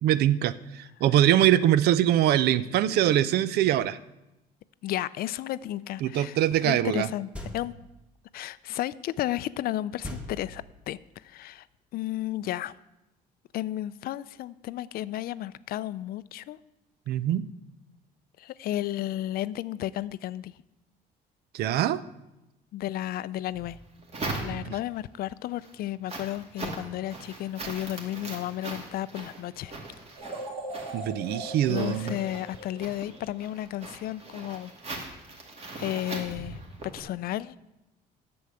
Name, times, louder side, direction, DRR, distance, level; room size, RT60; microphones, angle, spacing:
voice 1, 0.0-4.0 6.0-7.1 17.1-17.5 21.5-22.0 24.5-24.6 30.9-32.1, right 12 dB, 70° right, 16 dB, 0.5 m, -23 dB
voice 2, 4.8-7.7 8.3-11.7 11.9-12.8 13.5-16.6 18.4-20.5 22.7-23.8 24.4-29.7 31.7-34.7 35.8-37.6, left 13 dB, 65° left, 18 dB, 0.4 m, -33 dB
sound 1, 7.3-8.0 10.0-11.0, left 1 dB, 5° right, 1.5 m, -40 dB
sound 2, 23.5-25.0 25.4-37.0, right 2 dB, 40° right, 2.2 m, -40 dB
sound 3, 30.2-33.3, right 1 dB, 90° right, 3.4 m, -40 dB
8.3 x 7.0 x 7.8 m, 0.95 s
cardioid pair, 110°, 17 cm